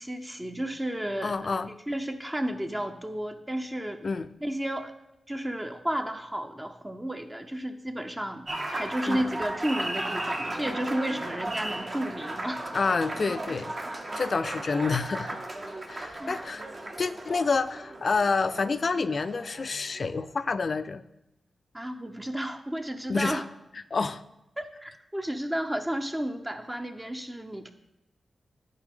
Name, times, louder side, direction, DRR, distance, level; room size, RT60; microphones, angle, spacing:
voice 1, 0.0-1.4 1.9-4.0 4.4-4.9 5.3-12.6 16.2-16.3 21.7-23.5 24.6-27.7, right 1 dB, 20° right, 5 dB, 0.6 m, -32 dB
voice 2, 1.2-1.7 4.0-4.3 9.1-9.2 12.7-15.4 15.9-16.6 17.0-21.0 23.1-23.4 23.9-24.2, left 4 dB, 60° left, 13 dB, 0.4 m, -28 dB
Applause, 8.5-20.2, right 1 dB, 45° right, 1.1 m, -36 dB
10.5 x 4.1 x 3.6 m, 0.87 s
cardioid pair, 45°, 0 cm